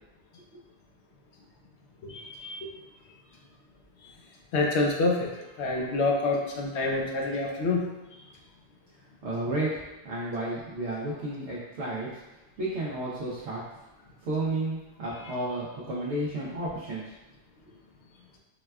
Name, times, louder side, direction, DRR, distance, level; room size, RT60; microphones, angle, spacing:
voice 1, 2.1-2.7 4.5-7.8, left 3 dB, 80° left, -1 dB, 0.9 m, -27 dB
voice 2, 9.2-13.6 14.2-17.1, right 2 dB, 80° right, -7 dB, 0.9 m, -32 dB
4.1 x 2.2 x 2.2 m, 1.0 s
omnidirectional pair, 1.1 m